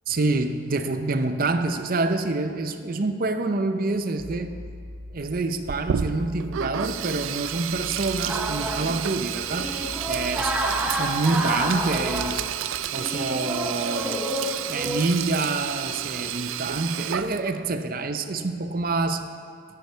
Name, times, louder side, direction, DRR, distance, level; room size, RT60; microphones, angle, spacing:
voice 1, 0.1-4.5 5.1-9.7 10.1-10.5 10.9-12.4 12.9-14.3 14.6-19.3, right 3 dB, 45° right, 9 dB, 0.6 m, -27 dB
sound 1, 4.2-12.3, left 1 dB, 65° right, 2.7 m, -41 dB
Sink (filling or washing), 5.6-17.7, right 10 dB, 85° right, 0.4 m, -31 dB
sound 2, 8.3-15.1, right 1 dB, 5° right, 0.7 m, -30 dB
14.0 x 8.6 x 4.5 m, 2.3 s
head